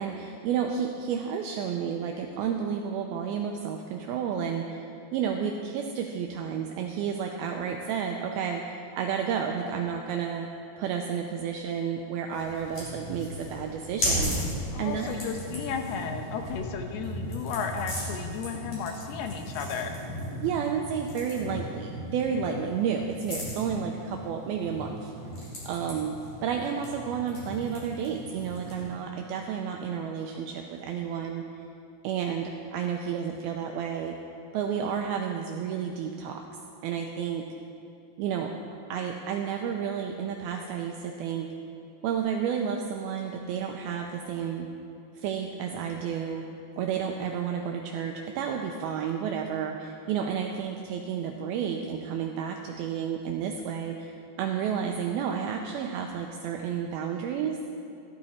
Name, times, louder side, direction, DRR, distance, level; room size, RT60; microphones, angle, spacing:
voice 1, 0.0-10.5 10.8-15.1 20.4-25.1 25.6-31.4 32.0-34.2 34.5-36.4 36.8-37.5 38.2-38.5 38.9-41.5 42.0-44.7 45.2-46.5 46.8-57.6, right 7 dB, 85° right, 2 dB, 2.2 m, -31 dB
sound 1, 12.3-28.9, equal, 40° left, 4.6 m, -36 dB
voice 2, 14.7-20.0, left 6 dB, 75° left, 5 dB, 2.7 m, -34 dB
15.0 x 12.0 x 4.3 m, 2.6 s
omnidirectional pair, 4.9 m